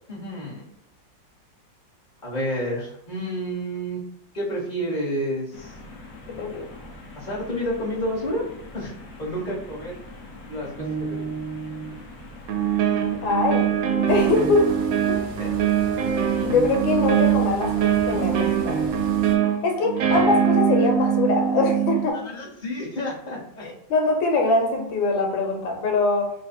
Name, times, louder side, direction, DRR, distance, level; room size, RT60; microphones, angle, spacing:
voice 1, 0.1-0.6 2.2-4.0 4.3-5.8 7.1-8.4 8.7-8.9 9.2-9.9 10.5-11.3 15.4-15.5 22.0-23.7, equal, 25° left, -6 dB, 1.5 m, -30 dB
sound 1, 5.5-14.4, left 2 dB, 60° left, 1.0 m, -43 dB
voice 2, 6.3-6.8 13.2-13.7 14.1-14.8 15.1-15.2 16.4-18.9 19.6-22.2 23.6-26.3, left 3 dB, 90° left, 2 dB, 1.5 m, -23 dB
sound 2, 10.8-11.9 12.5-22.1, right 9 dB, 85° right, 1.3 m, -23 dB
sound 3, 14.1-19.4, left 1 dB, 65° right, 1.3 m, -38 dB
3.3 x 2.6 x 4.2 m, 0.72 s
omnidirectional pair, 2.0 m